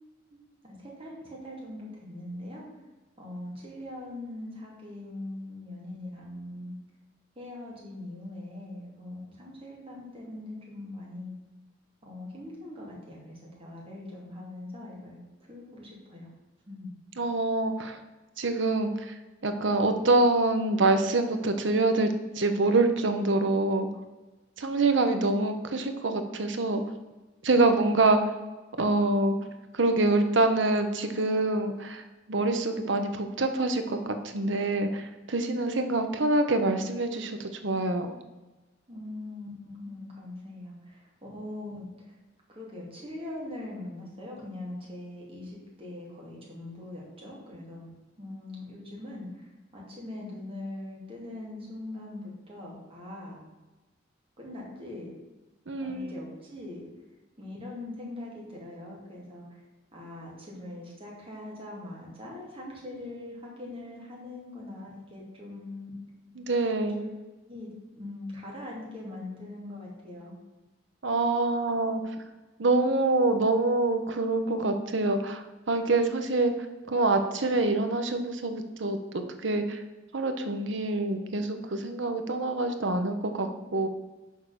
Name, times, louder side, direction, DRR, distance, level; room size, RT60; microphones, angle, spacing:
voice 1, 0.6-2.6 3.2-6.7 7.4-11.3 12.0-15.2 15.5-16.3 16.7-16.9 38.9-42.1 42.5-47.9 48.2-53.4 54.4-55.1 55.8-56.9 57.4-59.6 59.9-65.9 66.9-67.1 67.5-67.7 67.9-70.4, left 1 dB, 30° right, -4 dB, 2.5 m, -41 dB
voice 2, 17.2-18.0 18.4-19.1 19.4-23.9 24.6-26.8 27.4-28.2 28.8-29.4 29.7-32.0 32.3-38.1 55.7-56.1 66.4-67.0 71.0-72.0 72.6-76.5 76.9-79.8 80.1-83.9, right 2 dB, 75° right, 7 dB, 0.9 m, -26 dB
6.5 x 4.8 x 6.7 m, 1.1 s
head